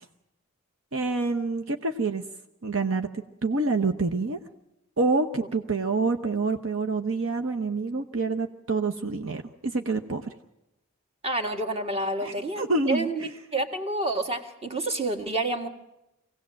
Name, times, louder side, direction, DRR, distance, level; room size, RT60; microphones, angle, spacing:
voice 1, 0.9-2.2 2.6-4.4 5.0-10.3 12.2-13.3, right 3 dB, 65° right, 4 dB, 1.0 m, -27 dB
voice 2, 11.2-15.7, right 2 dB, 30° right, 5 dB, 1.8 m, -29 dB
24.5 x 17.5 x 7.6 m, 0.90 s
head